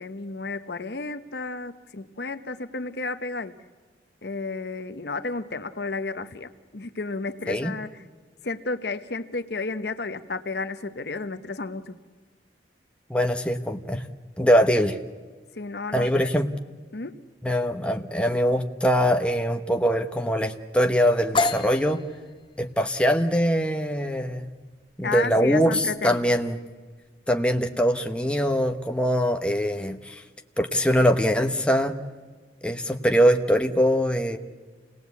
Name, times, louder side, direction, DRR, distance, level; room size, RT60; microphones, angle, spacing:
voice 1, 0.0-3.6 4.2-8.0 8.4-12.0 15.6-16.3 16.9-17.2 25.0-26.4, left 3 dB, 65° left, 10 dB, 0.9 m, -32 dB
voice 2, 13.1-14.0 14.4-15.0 15.9-16.5 17.4-22.0 22.6-24.5 25.0-26.6 27.3-30.2 30.6-32.0 32.6-34.4, equal, 5° left, 6 dB, 1.0 m, -22 dB
sound 1, 21.4-29.0, left 2 dB, 25° left, 0.6 m, -34 dB
28.0 x 19.0 x 8.3 m, 1.4 s
head